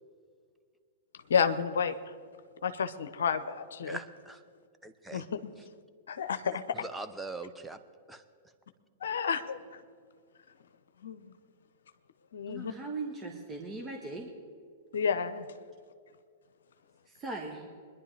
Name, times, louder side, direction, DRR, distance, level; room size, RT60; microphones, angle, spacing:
voice 1, 1.3-2.1 2.6-4.0 5.1-5.5 6.1-6.6 9.0-9.8 11.0-11.3 12.3-12.7 14.9-15.5, left 6 dB, 75° left, 10 dB, 0.7 m, -31 dB
voice 2, 3.8-4.4 4.8-5.2 6.8-7.8 8.1-8.2, right 2 dB, 5° right, 8 dB, 0.9 m, -41 dB
voice 3, 12.5-14.3 17.1-17.7, right 3 dB, 25° right, 2 dB, 1.6 m, -39 dB
23.0 x 10.5 x 3.4 m, 2.1 s
hypercardioid pair, 105°, 0 cm